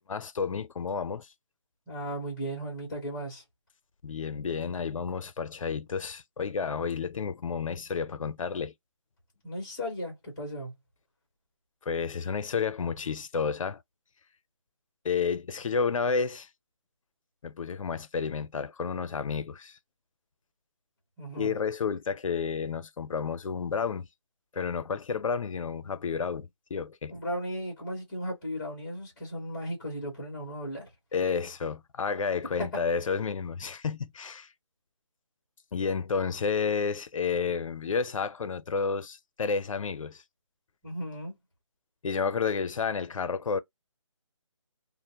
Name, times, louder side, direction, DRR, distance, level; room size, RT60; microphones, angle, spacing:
voice 1, 0.1-1.3 4.0-8.7 11.9-13.8 15.0-16.5 17.4-19.8 21.3-24.1 24.5-27.1 31.1-34.5 35.7-40.2 42.0-43.6, left 5 dB, 90° left, 0.5 m, -31 dB
voice 2, 1.9-3.4 9.4-10.7 21.2-21.5 27.1-30.9 32.6-32.8 40.8-41.3, equal, 5° left, 0.5 m, -36 dB
2.4 x 2.0 x 2.7 m
hypercardioid pair, 175°, 16 cm